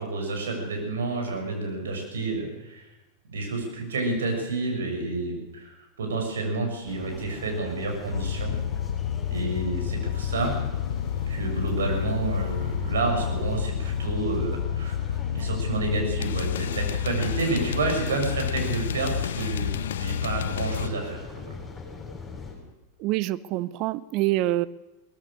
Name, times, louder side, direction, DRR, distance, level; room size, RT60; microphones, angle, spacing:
voice 1, 0.0-2.9 3.3-8.6 9.3-10.6 11.3-15.0 15.3-21.5, right 3 dB, 65° right, 2 dB, 7.0 m, -29 dB
sound 1, 6.9-22.5, left 4 dB, 10° left, 7.6 m, -41 dB
sound 2, 8.1-20.9, left 10 dB, 60° left, 0.7 m, -30 dB
voice 2, 23.0-24.7, right 16 dB, 40° right, 19 dB, 0.8 m, -26 dB
23.0 x 19.5 x 6.8 m, 1.1 s
figure-of-eight pair, 90°, 0 cm